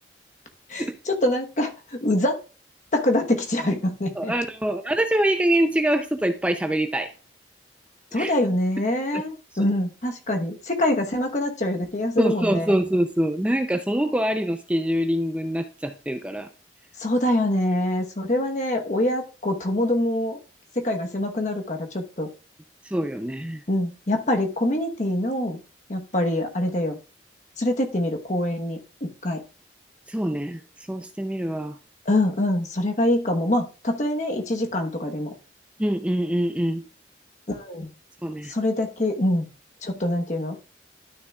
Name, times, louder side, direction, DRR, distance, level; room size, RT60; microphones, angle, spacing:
voice 1, 0.7-2.4 2.9-4.3 8.1-12.8 17.0-20.4 20.7-22.3 23.7-25.6 25.9-27.0 27.6-29.4 32.1-35.3 37.5-37.9 38.5-39.5 39.8-40.6, left 1 dB, 40° left, 1.1 m, -25 dB
voice 2, 4.2-7.1 8.1-8.3 9.1-9.2 12.2-16.5 22.8-23.6 30.1-30.6 30.9-31.8 35.8-36.8 38.2-38.5, right 1 dB, 5° right, 0.5 m, -24 dB
12.0 x 6.6 x 2.4 m
head